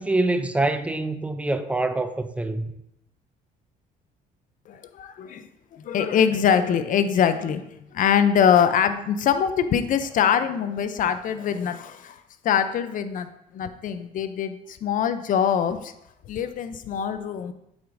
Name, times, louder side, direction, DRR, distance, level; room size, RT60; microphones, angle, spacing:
voice 1, 0.0-2.7, right 2 dB, 10° right, 0.4 m, -25 dB
voice 2, 4.7-7.7 7.9-13.3 13.5-15.9 16.3-17.5, left 8 dB, 50° left, 0.5 m, -23 dB
8.0 x 4.7 x 2.6 m
cardioid pair, 110°, 17 cm